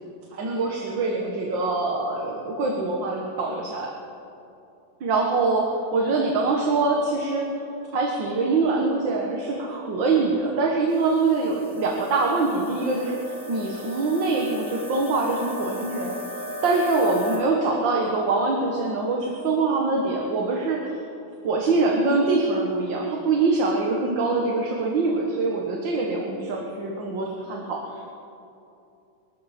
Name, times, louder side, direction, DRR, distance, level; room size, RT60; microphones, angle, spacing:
voice 1, 0.3-3.9 5.0-7.5 7.9-21.0 21.4-28.1, right 3 dB, 70° right, 0 dB, 2.1 m, -24 dB
sound 1, 10.9-17.4, equal, 20° left, 3.9 m, -37 dB
24.5 x 13.0 x 4.3 m, 2.7 s
omnidirectional pair, 2.1 m